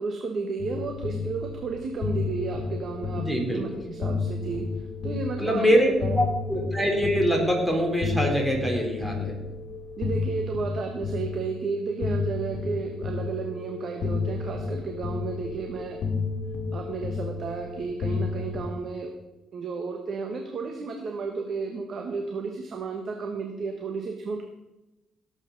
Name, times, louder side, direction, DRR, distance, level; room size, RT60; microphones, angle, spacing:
voice 1, 0.0-4.7 5.0-6.1 10.0-16.0 16.7-19.1 19.5-24.5, right 4 dB, 55° right, 3 dB, 1.5 m, -32 dB
sound 1, 0.6-18.6, left 4 dB, 65° left, 2.2 m, -32 dB
voice 2, 3.1-3.6 5.4-9.4, equal, 5° right, 0 dB, 3.8 m, -24 dB
17.5 x 8.2 x 4.1 m, 1.0 s
cardioid pair, 90°, 0 cm